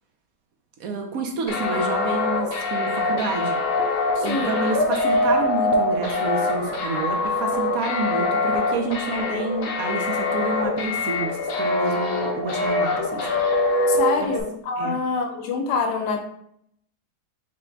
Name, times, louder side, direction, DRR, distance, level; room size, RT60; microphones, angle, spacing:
voice 1, 0.8-3.6 4.2-13.3 14.2-14.3 14.8-15.0, right 3 dB, 70° right, 2 dB, 1.0 m, -29 dB
sound 1, 1.5-14.4, left 2 dB, 60° left, 1.0 m, -24 dB
voice 2, 4.2-4.6 13.9-16.2, left 4 dB, 85° left, 4 dB, 1.3 m, -26 dB
5.5 x 2.2 x 3.8 m, 0.71 s
omnidirectional pair, 1.8 m